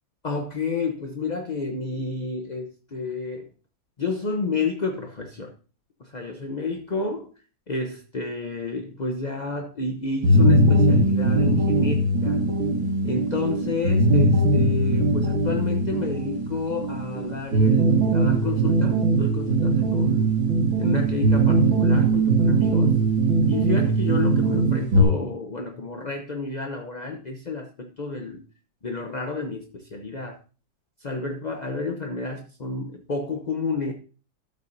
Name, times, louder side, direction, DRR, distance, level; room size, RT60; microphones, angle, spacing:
voice 1, 0.2-3.5 4.0-5.5 6.0-7.3 7.7-12.4 13.0-20.4 20.8-22.9 23.5-28.4 28.8-30.4 31.0-33.9, left 3 dB, 40° left, 3 dB, 0.6 m, -30 dB
sound 1, 10.2-25.0, right 2 dB, 90° right, 2.7 m, -20 dB
13.0 x 7.6 x 2.7 m, 0.36 s
omnidirectional pair, 2.1 m